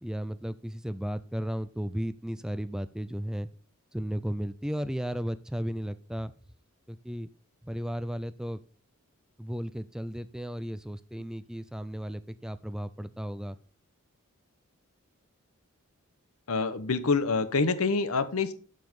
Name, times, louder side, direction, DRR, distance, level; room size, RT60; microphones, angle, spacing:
voice 1, 0.0-3.5 3.9-6.3 6.9-7.3 7.6-8.6 9.4-13.6, equal, 5° right, 14 dB, 0.4 m, -34 dB
voice 2, 16.5-18.5, left 4 dB, 80° left, 13 dB, 1.0 m, -26 dB
7.7 x 7.2 x 5.3 m, 0.38 s
head